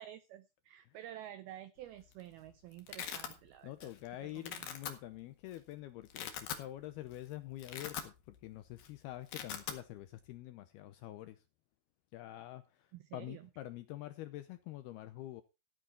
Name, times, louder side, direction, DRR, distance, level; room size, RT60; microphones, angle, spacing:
voice 1, 0.0-3.9 4.2-4.7 12.9-13.5, right 12 dB, 90° right, 2.1 m, -50 dB
Domestic sounds home sounds, 1.9-2.2 2.5-3.3 3.8-4.1 4.4-4.9 5.5-5.6 6.0-6.7 7.1-7.2 7.5-8.5 8.7-8.9 9.1-9.8, left 9 dB, 60° left, 3.2 m, -42 dB
voice 2, 3.6-11.4 12.1-15.4, left 15 dB, 80° left, 2.3 m, -46 dB
14.5 x 9.1 x 4.3 m
omnidirectional pair, 5.3 m